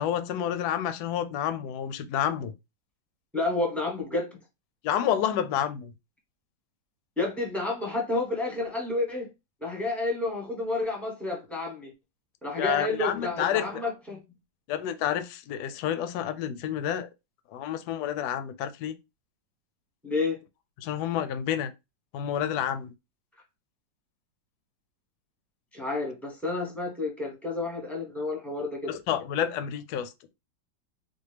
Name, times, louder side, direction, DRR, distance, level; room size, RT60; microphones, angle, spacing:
voice 1, 0.0-2.5 4.8-5.9 12.6-13.7 14.7-17.1 17.5-19.0 20.8-21.7 22.1-22.9 28.9-30.3, left 10 dB, 75° left, 0.9 m, -29 dB
voice 2, 3.3-4.4 7.2-9.3 9.6-11.9 12.4-14.2 20.0-20.4 25.7-28.9, left 2 dB, ahead, 0.5 m, -30 dB
4.2 x 2.2 x 3.2 m
omnidirectional pair, 2.1 m